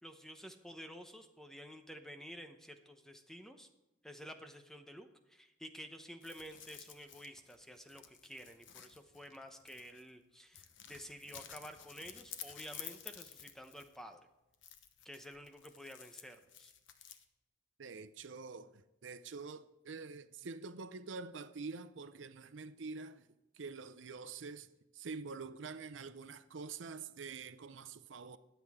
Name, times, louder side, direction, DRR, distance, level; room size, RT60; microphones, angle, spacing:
voice 1, 0.0-3.7 4.0-14.2 15.0-16.7, equal, ahead, 0.8 m, -51 dB
sound 1, 6.2-10.1 10.5-14.1 14.5-17.2, left 9 dB, 90° left, 1.0 m, -53 dB
voice 2, 17.8-23.3 23.5-28.4, right 4 dB, 85° right, 0.6 m, -46 dB
22.0 x 8.1 x 3.6 m
head